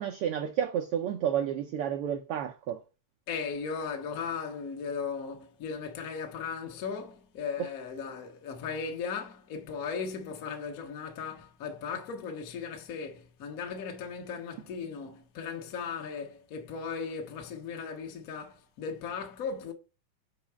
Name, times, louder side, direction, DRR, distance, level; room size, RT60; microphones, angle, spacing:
voice 1, 0.0-2.8, right 9 dB, 90° right, 1.2 m, -31 dB
voice 2, 3.3-19.7, left 6 dB, 70° left, 0.8 m, -37 dB
4.9 x 4.8 x 4.4 m
omnidirectional pair, 3.3 m